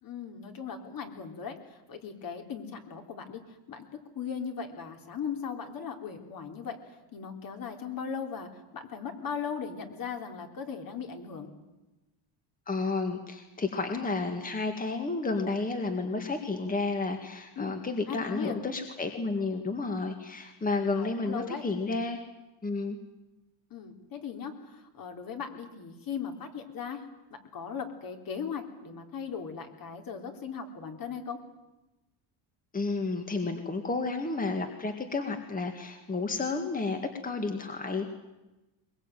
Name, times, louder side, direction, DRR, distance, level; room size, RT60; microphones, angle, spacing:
voice 1, 0.0-3.8 4.2-6.8 7.1-11.5 17.6-17.8 18.1-18.6 20.9-21.6 23.7-27.0 27.5-31.4, left 6 dB, 45° left, 5 dB, 3.5 m, -38 dB
voice 2, 12.7-22.2 22.6-23.0 32.7-38.1, left 3 dB, 15° left, 5 dB, 1.9 m, -31 dB
22.0 x 21.5 x 9.2 m, 1.1 s
cardioid pair, 130°, 48 cm